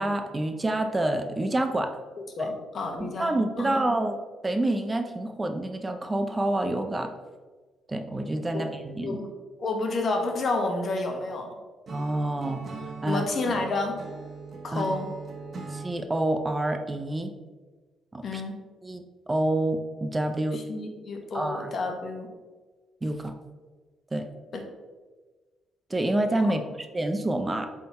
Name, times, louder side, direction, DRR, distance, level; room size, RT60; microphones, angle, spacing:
voice 1, 0.0-1.9 2.4-2.5 3.0-7.1 7.9-9.2 11.9-12.7 13.0-13.2 14.7-14.9 15.7-17.3 18.1-18.4 18.8-20.6 21.3-21.7 23.0-23.3 24.1-24.3 25.9-27.7, right 1 dB, 20° right, 6 dB, 0.6 m, -28 dB
voice 2, 2.4-3.3 3.6-3.8 8.5-8.7 9.0-9.3 9.6-11.5 13.1-14.0 14.6-15.1 18.2-18.6 20.5-22.3 24.5-24.6, left 3 dB, 50° left, 3 dB, 1.3 m, -30 dB
Acoustic guitar / Strum, 11.9-16.0, right 4 dB, 45° right, 1.4 m, -40 dB
7.6 x 3.8 x 4.2 m, 1.3 s
cardioid pair, 90°, 0 cm